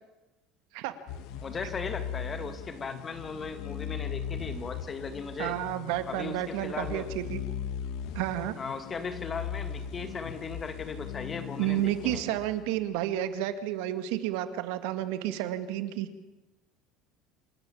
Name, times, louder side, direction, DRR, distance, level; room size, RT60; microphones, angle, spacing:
sound 1, 1.1-12.9, left 8 dB, 70° left, 1.9 m, -39 dB
voice 1, 1.4-5.6 6.1-7.1 8.6-12.4, left 4 dB, 25° left, 9 dB, 2.2 m, -37 dB
voice 2, 5.4-7.4 8.1-8.6 11.6-16.1, right 12 dB, 80° right, 10 dB, 2.0 m, -31 dB
28.0 x 13.5 x 8.6 m, 1.1 s
cardioid pair, 135°, 0 cm